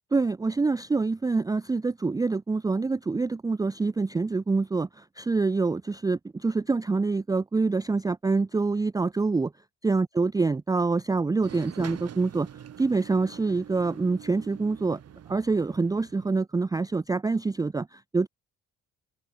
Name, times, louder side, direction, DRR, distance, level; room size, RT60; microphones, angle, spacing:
voice 1, 0.1-9.5 9.8-12.5 12.8-15.0 15.3-18.3, right 3 dB, 10° right, 0.4 m, -26 dB
sound 1, 11.4-16.4, right 9 dB, 55° right, 1.8 m, -44 dB
open air
cardioid pair, 90°, 30 cm